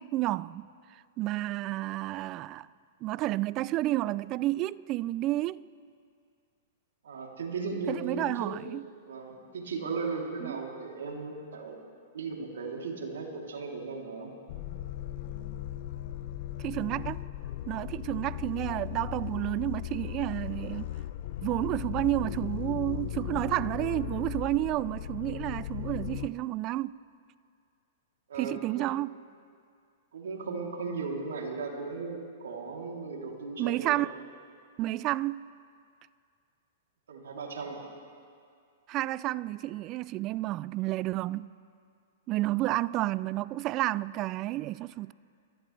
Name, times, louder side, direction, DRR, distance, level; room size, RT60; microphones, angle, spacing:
voice 1, 0.0-2.7 3.0-5.6 7.9-8.8 10.4-10.6 16.6-17.2 17.7-20.9 21.4-27.0 28.3-29.2 33.6-34.1 34.8-35.5 38.9-41.5 42.3-45.1, right 16 dB, 35° right, 0.3 m, -31 dB
voice 2, 7.0-8.5 9.0-11.8 12.1-14.3 28.3-28.8 30.1-34.0 37.1-37.8, right 4 dB, 80° right, 3.1 m, -36 dB
sound 1, 14.5-26.3, left 12 dB, 55° left, 0.7 m, -37 dB
23.5 x 15.0 x 3.3 m
hypercardioid pair, 125°, 0 cm